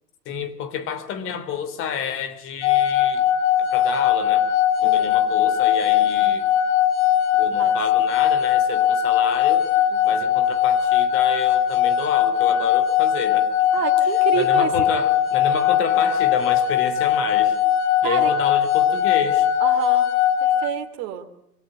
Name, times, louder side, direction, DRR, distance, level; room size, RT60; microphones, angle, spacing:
voice 1, 0.3-3.3 3.6-4.5 4.8-6.5 7.4-9.7 10.0-13.5 14.3-17.6 18.0-19.5, left 7 dB, 25° left, 11 dB, 3.4 m, -30 dB
sound 1, 2.6-20.7, left 10 dB, 45° left, 4.5 m, -20 dB
voice 2, 4.8-5.1 7.6-7.8 9.9-10.2 13.7-14.8 18.0-18.3 19.6-20.1 20.4-21.3, right 10 dB, 35° right, 5 dB, 2.8 m, -29 dB
24.5 x 17.5 x 9.3 m, 0.77 s
figure-of-eight pair, 120°, 48 cm